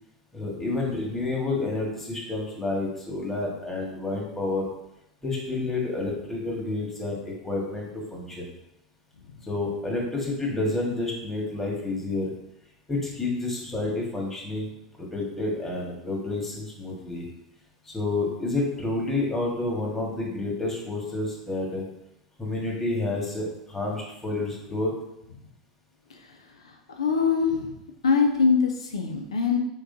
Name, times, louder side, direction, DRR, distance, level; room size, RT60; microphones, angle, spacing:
voice 1, 0.3-4.7 5.2-8.5 9.5-12.3 12.9-14.7 15.0-17.3 17.8-21.8 22.4-24.9, left 2 dB, 10° left, -3 dB, 1.6 m, -29 dB
voice 2, 26.1-27.8 28.0-29.6, left 5 dB, 85° left, 3 dB, 0.5 m, -24 dB
4.6 x 3.6 x 2.7 m, 0.83 s
hypercardioid pair, 85°, 3 cm